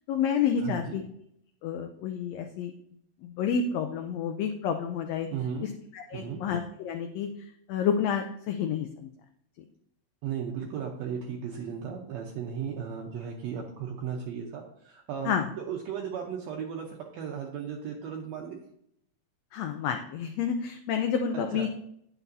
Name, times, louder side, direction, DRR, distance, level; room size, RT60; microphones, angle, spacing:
voice 1, 0.1-1.0 1.6-2.7 3.2-5.3 5.9-7.3 7.7-9.1 15.2-15.5 19.5-21.7, left 7 dB, 75° left, 5 dB, 1.6 m, -29 dB
voice 2, 0.6-1.0 5.3-5.7 6.1-6.4 10.2-18.6 21.3-21.7, right 7 dB, 75° right, 0 dB, 1.9 m, -36 dB
9.4 x 6.0 x 2.7 m, 0.72 s
omnidirectional pair, 3.3 m